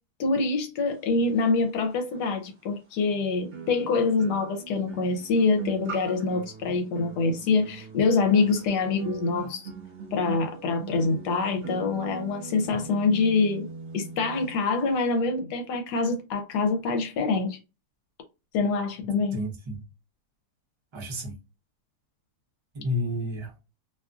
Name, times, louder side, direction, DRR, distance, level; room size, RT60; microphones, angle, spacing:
voice 1, 0.2-9.7 10.1-13.7 13.9-17.6 18.5-19.4, left 4 dB, 85° left, 1.2 m, -25 dB
sound 1, 2.1-2.2 3.5-14.6 14.9-15.1, right 6 dB, 45° right, 0.9 m, -40 dB
voice 2, 19.0-19.8 20.9-21.4 22.7-23.5, left 1 dB, 30° right, 0.5 m, -31 dB
2.8 x 2.4 x 2.4 m
omnidirectional pair, 1.7 m